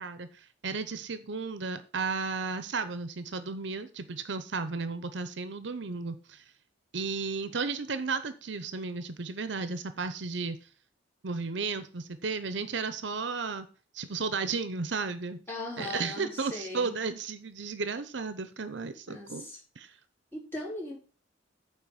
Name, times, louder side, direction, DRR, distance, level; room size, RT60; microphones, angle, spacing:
voice 1, 0.0-6.4 6.9-10.6 11.2-13.7 13.9-15.4 15.8-19.5 19.8-19.9, right 4 dB, 70° right, 0.8 m, -34 dB
voice 2, 15.5-17.0 19.1-19.6 20.3-21.0, left 2 dB, 10° left, 3.7 m, -38 dB
9.1 x 4.0 x 7.1 m
head